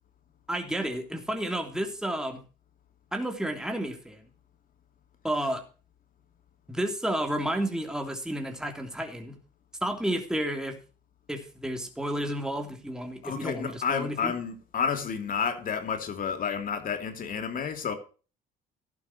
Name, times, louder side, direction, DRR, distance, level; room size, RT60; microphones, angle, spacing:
voice 1, 0.5-2.4 3.1-4.2 5.2-5.6 6.7-9.4 9.8-10.8 11.3-14.3, right 1 dB, 5° right, 3.1 m, -31 dB
voice 2, 13.2-17.9, left 6 dB, 50° left, 2.8 m, -30 dB
15.0 x 11.5 x 2.9 m
supercardioid pair, 85°, 18 cm